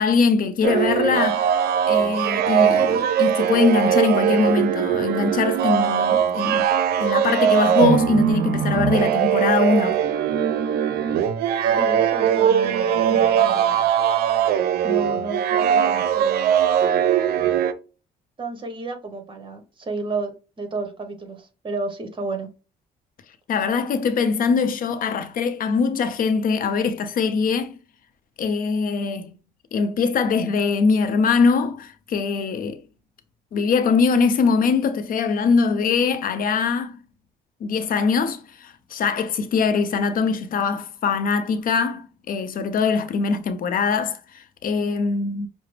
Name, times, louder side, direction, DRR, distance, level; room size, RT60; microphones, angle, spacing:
voice 1, 0.0-1.5 1.9-6.7 7.0-10.0 23.5-27.8 28.4-29.3 29.7-32.8 33.5-37.0 37.6-45.5, left 5 dB, 60° left, 0.6 m, -22 dB
sound 1, 0.6-17.7, right 9 dB, 70° right, 0.5 m, -20 dB
voice 2, 11.6-13.8 14.8-16.5 18.4-22.5, right 3 dB, 30° right, 1.1 m, -32 dB
5.8 x 2.1 x 3.2 m
cardioid pair, 85°, 17 cm